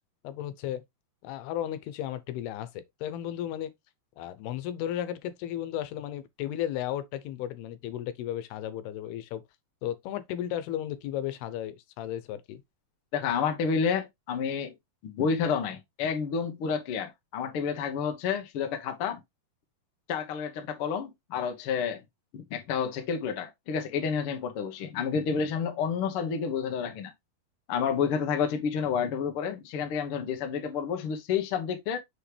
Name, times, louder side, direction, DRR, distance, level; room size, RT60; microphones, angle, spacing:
voice 1, 0.2-0.8 1.2-3.7 4.2-9.4 9.8-12.6, left 11 dB, 90° left, 2.8 m, -34 dB
voice 2, 13.1-14.7 15.0-19.2 20.1-22.0 22.3-27.1 27.7-32.0, left 6 dB, 70° left, 1.3 m, -30 dB
6.5 x 5.0 x 3.3 m
omnidirectional pair, 4.5 m